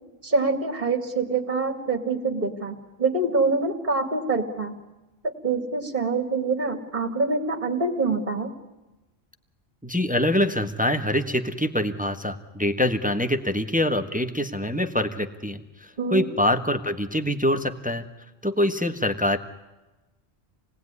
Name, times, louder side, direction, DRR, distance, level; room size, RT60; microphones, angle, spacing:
voice 1, 0.2-4.8 5.2-8.5 16.0-16.2, right 3 dB, 45° right, 4 dB, 2.6 m, -25 dB
voice 2, 9.8-18.1 18.4-19.4, left 1 dB, 5° right, 8 dB, 1.4 m, -25 dB
28.0 x 19.5 x 9.7 m, 1.1 s
omnidirectional pair, 1.1 m